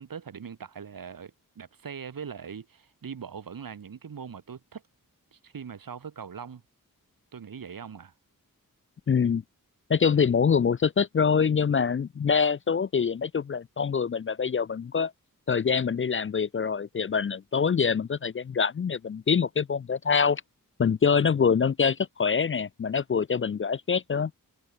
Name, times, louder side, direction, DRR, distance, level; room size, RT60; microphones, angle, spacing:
voice 1, 0.0-4.8 5.3-6.6 7.3-8.1, right 7 dB, 75° right, 1.6 m, -41 dB
voice 2, 9.1-9.4 9.9-15.1 15.5-20.4 20.8-24.3, left 6 dB, 35° left, 0.4 m, -25 dB
wide cardioid pair, 90°, 35 cm